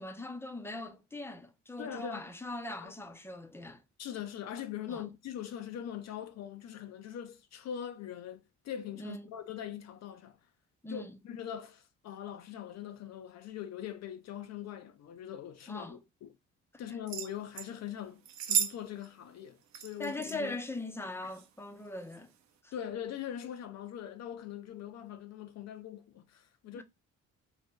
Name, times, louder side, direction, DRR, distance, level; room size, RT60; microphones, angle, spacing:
voice 1, 0.0-3.8 4.9-5.0 9.0-9.3 10.8-11.2 15.7-16.0 16.9-17.0 20.0-22.3 22.6-22.7 26.7-26.8, left 2 dB, 10° left, 0.5 m, -41 dB
voice 2, 1.8-2.3 2.8-2.9 4.0-10.4 10.9-16.3 16.8-20.6 22.7-26.8, left 10 dB, 60° left, 0.5 m, -42 dB
sound 1, 17.1-17.7 18.3-18.8 19.0-19.1 19.7-20.4 21.2-21.5 22.0-22.2, right 9 dB, 65° right, 0.6 m, -33 dB
2.7 x 2.2 x 3.5 m
cardioid pair, 90°, 30 cm